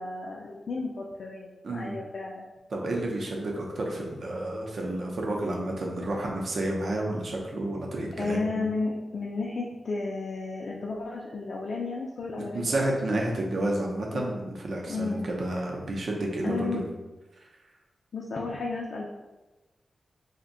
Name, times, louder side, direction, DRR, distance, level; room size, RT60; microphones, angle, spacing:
voice 1, 0.0-2.5 8.2-12.8 14.1-14.3 14.9-15.3 16.4-16.8 18.1-19.1, left 3 dB, 60° left, -2 dB, 0.4 m, -33 dB
voice 2, 1.6-2.0 2.7-8.7 12.5-16.9, right 1 dB, 55° right, -1 dB, 0.6 m, -30 dB
2.6 x 2.1 x 3.7 m, 1.1 s
wide cardioid pair, 125°, 0 cm